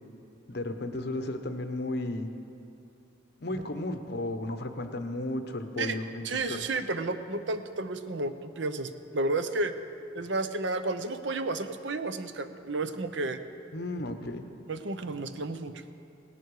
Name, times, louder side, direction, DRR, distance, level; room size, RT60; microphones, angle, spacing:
voice 1, 0.5-2.3 3.4-6.6 13.7-14.4, left 1 dB, 60° left, 7 dB, 1.0 m, -34 dB
voice 2, 6.2-9.7 10.1-13.4 14.7-15.8, right 2 dB, 75° right, 10 dB, 0.7 m, -32 dB
18.0 x 11.5 x 4.9 m, 2.7 s
head